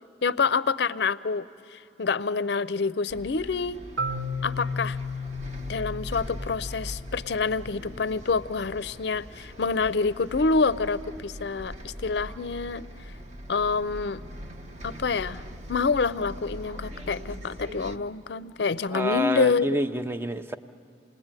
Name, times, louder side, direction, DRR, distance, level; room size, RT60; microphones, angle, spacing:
voice 1, 0.2-3.8 4.4-5.0 5.7-12.9 13.5-14.2 14.8-15.4 15.7-19.7, left 4 dB, 60° left, 16 dB, 0.5 m, -27 dB
Bus, 3.1-18.0, equal, 40° right, 1.1 m, -41 dB
Marimba xylophone, 4.0-7.9, left 2 dB, 75° right, 1.1 m, -34 dB
voice 2, 18.9-20.6, equal, 10° right, 9 dB, 0.6 m, -28 dB
28.5 x 20.0 x 9.0 m, 2.6 s
head